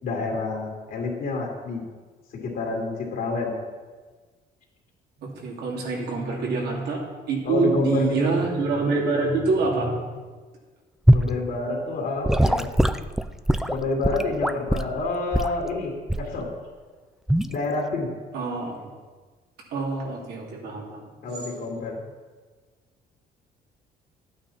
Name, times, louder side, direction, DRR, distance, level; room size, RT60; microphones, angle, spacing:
voice 1, 0.0-1.8 2.3-3.6 6.3-6.8 7.4-8.3 8.9-9.0 11.1-12.7 13.7-16.5 17.5-18.1 21.2-22.0, left 3 dB, 65° left, -2 dB, 2.7 m, -28 dB
voice 2, 5.2-10.0 18.3-18.8 19.7-21.1, right 3 dB, 70° right, -2 dB, 2.9 m, -26 dB
Gurgling / Sink (filling or washing) / Liquid, 11.1-11.3 12.2-14.9 15.3-15.6 16.1-16.4 17.3-17.5, right 1 dB, ahead, 0.4 m, -21 dB
12.0 x 9.0 x 4.3 m, 1.4 s
cardioid pair, 110°, 17 cm